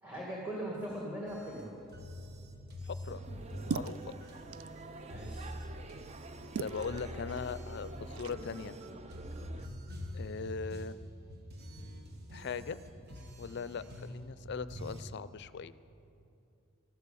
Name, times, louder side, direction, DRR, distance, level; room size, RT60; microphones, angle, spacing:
voice 1, 0.0-1.8 5.0-5.5, right 1 dB, 10° right, -4 dB, 1.9 m, -40 dB
sound 1, 1.3-15.0, equal, 50° right, 1.3 m, -45 dB
voice 2, 2.8-3.2 3.7-4.2 6.6-8.8 10.1-11.0 12.3-13.1 13.4-15.7, left 5 dB, 55° left, 15 dB, 0.4 m, -40 dB
sound 2, 3.1-9.7, right 2 dB, 30° right, 0.5 m, -48 dB
sound 3, 3.2-8.4, right 5 dB, 85° right, 0.4 m, -43 dB
13.5 x 11.5 x 6.9 m, 2.7 s
head